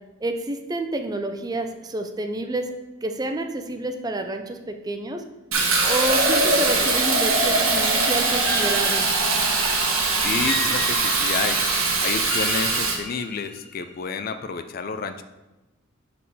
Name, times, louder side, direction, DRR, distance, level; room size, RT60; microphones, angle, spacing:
voice 1, 0.2-2.7 3.0-5.2 5.9-9.1, right 2 dB, 20° right, 6 dB, 0.4 m, -29 dB
Fill (with liquid), 5.5-13.0, right 3 dB, 90° right, 1.3 m, -21 dB
sound 1, 8.5-9.8 10.5-11.6 12.3-13.8, left 1 dB, 5° left, 1.5 m, -33 dB
voice 2, 10.1-11.6 12.0-15.2, left 5 dB, 45° left, 9 dB, 0.4 m, -30 dB
7.2 x 4.3 x 4.1 m, 1.0 s
head